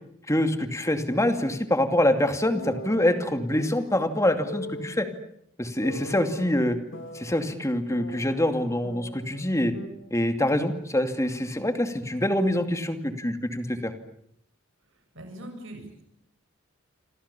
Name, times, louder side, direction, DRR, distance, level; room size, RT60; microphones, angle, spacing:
voice 1, 0.3-5.1 5.6-6.8 7.1-9.7 10.1-13.9, left 1 dB, 15° left, 7 dB, 2.5 m, -25 dB
sound 1, 2.5-4.0 4.4-5.0 5.8-7.5 7.9-9.5 9.7-9.9, left 1 dB, 65° left, 3.6 m, -40 dB
voice 2, 14.9-16.0, right 1 dB, 65° right, 4 dB, 7.7 m, -43 dB
28.5 x 26.0 x 7.1 m, 0.74 s
head